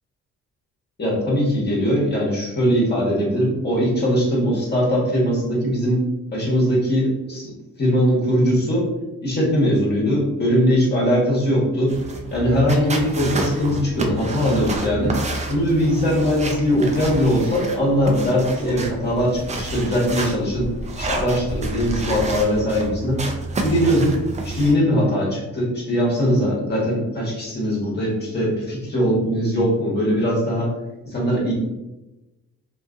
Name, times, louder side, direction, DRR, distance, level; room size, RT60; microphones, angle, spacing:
voice 1, 1.0-6.0 6.3-7.5 7.8-8.9 9.2-11.9 12.3-15.2 15.5-20.7 21.0-23.2 23.6-24.2 24.4-30.7 31.0-31.5, equal, 35° left, -5 dB, 1.3 m, -20 dB
sound 1, 11.9-24.7, right 2 dB, 25° right, 0.4 m, -30 dB
2.7 x 2.5 x 2.4 m, 1.0 s
cardioid pair, 90°, 30 cm